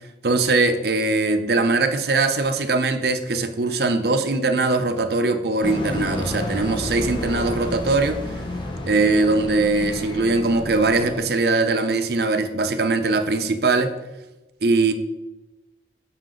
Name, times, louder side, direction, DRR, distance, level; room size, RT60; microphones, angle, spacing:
voice 1, 0.2-8.2 8.9-13.9 14.6-14.9, right 3 dB, 60° right, 7 dB, 0.6 m, -21 dB
sound 1, 5.6-11.2, left 1 dB, 25° left, 0.7 m, -30 dB
7.5 x 5.8 x 3.8 m, 1.0 s
head